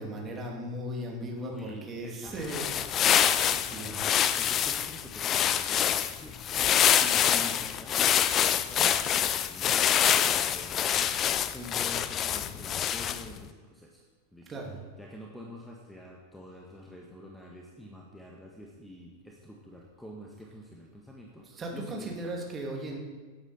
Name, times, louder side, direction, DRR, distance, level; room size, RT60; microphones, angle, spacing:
voice 1, 0.0-1.5 1.9-3.0 3.5-4.0 14.5-14.8 21.6-23.0, right 1 dB, 20° right, 0 dB, 2.8 m, -37 dB
voice 2, 1.3-2.4 3.0-8.0 8.4-14.0 14.3-14.6 15.0-22.3, left 1 dB, 5° left, -1 dB, 1.6 m, -47 dB
sound 1, 2.3-13.4, left 9 dB, 30° left, 0.6 m, -26 dB
17.5 x 9.0 x 4.4 m, 1.4 s
figure-of-eight pair, 90°, 0 cm